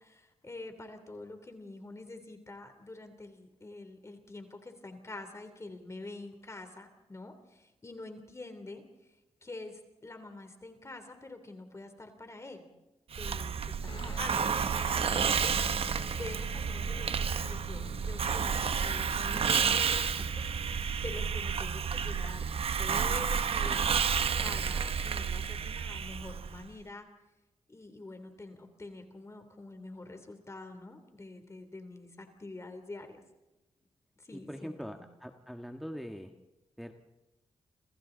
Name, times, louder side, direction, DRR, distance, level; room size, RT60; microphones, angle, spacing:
voice 1, 0.0-8.8 9.4-12.7 13.2-14.5 14.9-18.6 18.8-22.5 22.8-23.8 24.4-27.1 27.7-33.2 34.2-35.0, left 2 dB, 25° left, 7 dB, 3.2 m, -46 dB
Hiss, 13.1-26.6, right 6 dB, 65° right, 1.0 m, -31 dB
Guitar, 13.9-23.0, left 3 dB, 50° left, 7.1 m, -48 dB
voice 2, 34.3-36.3 36.8-36.9, equal, ahead, 4 dB, 1.5 m, -42 dB
29.5 x 27.5 x 4.0 m, 1.0 s
cardioid pair, 90°, 11 cm